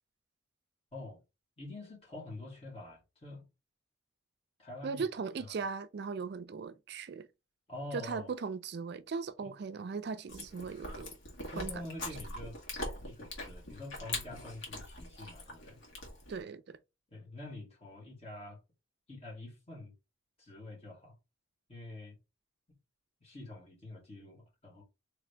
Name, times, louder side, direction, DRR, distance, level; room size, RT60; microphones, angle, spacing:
voice 1, 1.6-3.5 4.6-5.0 5.4-5.6 7.7-8.3 9.4-9.5 11.5-15.8 17.1-18.6 19.1-19.9 20.4-21.2 21.7-22.1 22.7-22.8 23.2-24.8, left 2 dB, 30° left, 2.4 m, -46 dB
voice 2, 4.8-7.3 7.9-11.2 11.5-11.8 16.3-16.8, right 5 dB, 55° right, 0.4 m, -38 dB
Chewing mastication, 10.3-16.4, left 2 dB, 75° left, 1.8 m, -42 dB
3.8 x 3.3 x 3.3 m
head